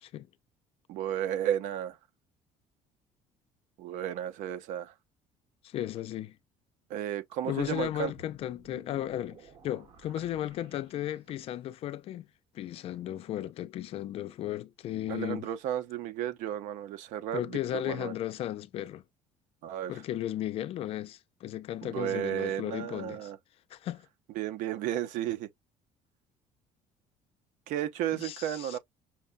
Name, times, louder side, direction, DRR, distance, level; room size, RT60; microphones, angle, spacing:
voice 1, 0.9-2.0 3.8-4.9 6.9-8.1 15.1-18.1 19.6-20.0 21.8-23.4 24.3-25.5 27.7-28.8, right 11 dB, 75° right, 0.7 m, -33 dB
voice 2, 5.6-6.4 7.5-12.3 12.5-15.5 17.3-19.0 19.9-23.3 23.7-24.1 28.2-28.8, left 12 dB, 50° left, 0.4 m, -35 dB
sound 1, 7.6-11.6, right 5 dB, 50° right, 1.3 m, -56 dB
5.8 x 2.2 x 2.5 m
cardioid pair, 150°, 13 cm